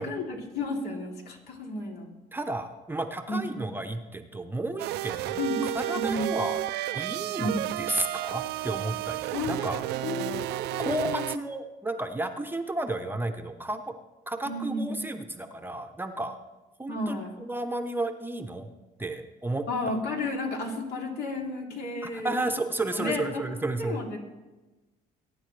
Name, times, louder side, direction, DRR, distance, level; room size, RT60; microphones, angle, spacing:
voice 1, 0.0-2.1 3.3-3.6 5.4-5.6 5.9-6.3 7.4-7.6 9.3-9.5 10.0-11.3 14.4-15.0 16.9-17.3 19.7-22.4 22.9-23.4 23.8-24.2, left 2 dB, 70° left, 0 dB, 3.0 m, -32 dB
voice 2, 2.3-5.4 5.7-6.6 6.9-9.8 10.8-13.9 14.3-16.4 16.8-18.7 19.0-19.7 22.0-24.0, right 2 dB, 10° right, 6 dB, 0.8 m, -32 dB
sound 1, 4.8-11.4, right 15 dB, 80° right, 0.5 m, -32 dB
22.0 x 9.8 x 3.3 m, 1.1 s
cardioid pair, 110°, 17 cm